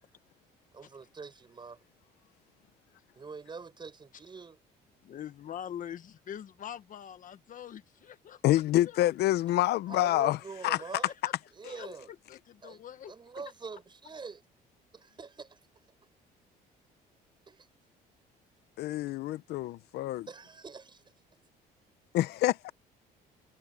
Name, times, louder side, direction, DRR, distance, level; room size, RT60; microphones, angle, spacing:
voice 1, 0.7-1.8 3.2-4.6 9.9-11.1 11.5-12.1 12.6-14.4 14.9-15.6 17.5-17.7 20.3-21.1, right 4 dB, 25° right, 6.4 m, -45 dB
voice 2, 5.0-9.2 10.8-11.3 11.6-13.1, left 9 dB, 50° left, 1.3 m, -44 dB
voice 3, 8.4-10.4 10.6-10.8 18.8-20.3 22.1-22.7, left 15 dB, 75° left, 0.8 m, -27 dB
cardioid pair, 110°, 17 cm